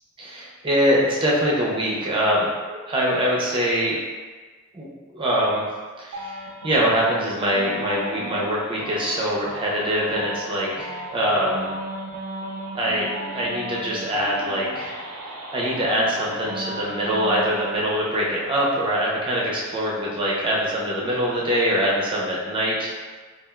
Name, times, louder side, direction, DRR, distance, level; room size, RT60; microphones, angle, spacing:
voice 1, 0.2-4.0 4.7-4.9 5.1-5.6 6.0-11.7 12.8-15.0 15.5-22.9, equal, 25° right, -5 dB, 0.6 m, -23 dB
sound 1, 6.1-17.8, equal, 75° right, 0.4 m, -35 dB
3.3 x 2.4 x 2.3 m, 1.4 s
head